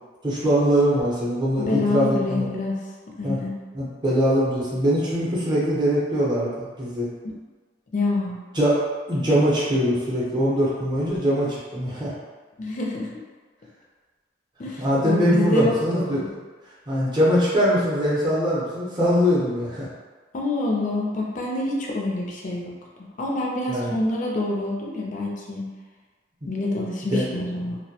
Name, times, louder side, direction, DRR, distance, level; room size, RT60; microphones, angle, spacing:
voice 1, 0.2-2.5 3.2-3.4 3.7-7.1 8.6-8.8 9.1-12.1 14.8-16.4 16.9-19.9 23.7-23.9 26.4-26.5 27.1-27.2, equal, 25° right, -7 dB, 0.6 m, -22 dB
voice 2, 1.6-2.7 3.2-3.5 7.2-7.4 7.9-8.4 12.6-13.2 14.6-16.3 20.3-22.7 23.2-25.7 26.5-27.8, left 2 dB, 45° left, -2 dB, 0.4 m, -26 dB
2.2 x 2.1 x 2.7 m, 1.4 s
head